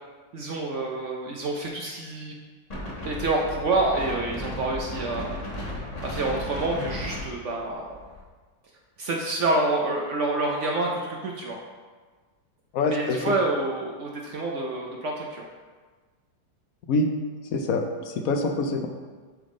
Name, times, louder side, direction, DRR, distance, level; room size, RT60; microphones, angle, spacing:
voice 1, 0.3-2.3 3.0-5.3 6.0-7.9 9.0-11.6 12.9-15.4, right 2 dB, 70° right, -1 dB, 0.7 m, -27 dB
Wind, 2.7-8.2, left 1 dB, 25° left, 1.0 m, -35 dB
voice 2, 12.7-13.4 16.9-17.1 17.5-18.9, left 3 dB, 65° left, 4 dB, 0.9 m, -25 dB
10.5 x 3.5 x 3.7 m, 1.4 s
omnidirectional pair, 2.0 m